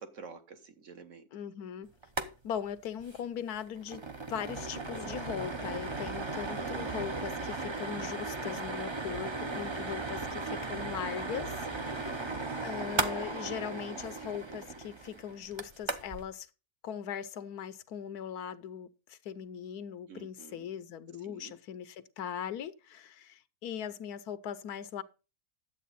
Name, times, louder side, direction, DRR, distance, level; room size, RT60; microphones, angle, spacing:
voice 1, 0.0-1.2 11.7-12.2 20.1-20.7 21.2-21.5, right 5 dB, 55° right, 1.4 m, -49 dB
voice 2, 1.3-1.9 2.4-4.0 4.3-16.5 16.8-25.0, left 8 dB, 80° left, 1.3 m, -40 dB
sound 1, 2.0-2.3 2.6-2.7 3.0-3.2 3.6-16.2, right 3 dB, 25° right, 0.6 m, -36 dB
11.0 x 7.9 x 4.1 m
omnidirectional pair, 1.6 m